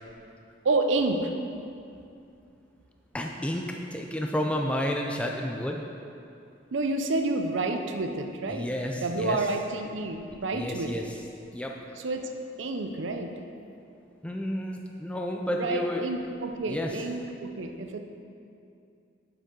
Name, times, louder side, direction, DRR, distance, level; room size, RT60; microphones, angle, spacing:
voice 1, 0.6-1.3 6.7-8.7 9.0-11.1 12.0-12.3 12.6-13.3 15.5-18.0, right 2 dB, 75° right, 5 dB, 0.6 m, -29 dB
voice 2, 3.1-5.8 8.5-9.5 10.5-11.3 11.5-11.7 14.2-16.0 16.7-17.2, equal, 5° left, 1 dB, 0.4 m, -31 dB
7.5 x 6.9 x 3.8 m, 2.5 s
head